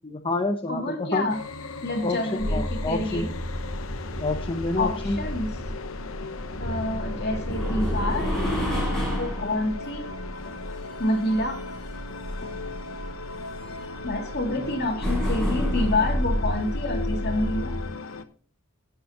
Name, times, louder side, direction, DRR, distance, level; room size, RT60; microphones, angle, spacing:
voice 1, 0.0-1.3 2.0-2.2 2.5-3.3 4.2-5.2, left 2 dB, 25° left, 3 dB, 0.9 m, -28 dB
voice 2, 0.7-1.4 1.8-3.3 4.8-5.5 6.2-6.3 6.6-8.3 9.2-10.1 11.0-11.6 12.4-12.5 14.0-17.8, left 1 dB, 50° left, 1 dB, 2.7 m, -28 dB
sound 1, 1.3-18.3, left 3 dB, 80° left, 1.0 m, -38 dB
sound 2, 2.4-17.9, equal, 5° left, 5.8 m, -30 dB
17.0 x 7.1 x 3.0 m, 0.38 s
head